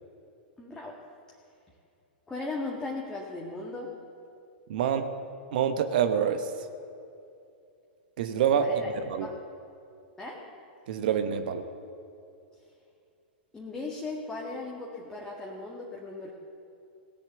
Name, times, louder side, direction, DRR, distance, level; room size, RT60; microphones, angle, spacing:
voice 1, 0.6-1.0 2.3-3.9 8.6-8.9 9.2-9.4 10.2-10.4 13.5-16.3, left 3 dB, 10° left, -3 dB, 1.8 m, -37 dB
voice 2, 4.7-5.1 5.5-6.5 8.2-8.8 9.1-9.3 10.9-11.6, right 8 dB, 55° right, 8 dB, 1.0 m, -26 dB
18.0 x 7.2 x 8.1 m, 2.6 s
figure-of-eight pair, 100°, 6 cm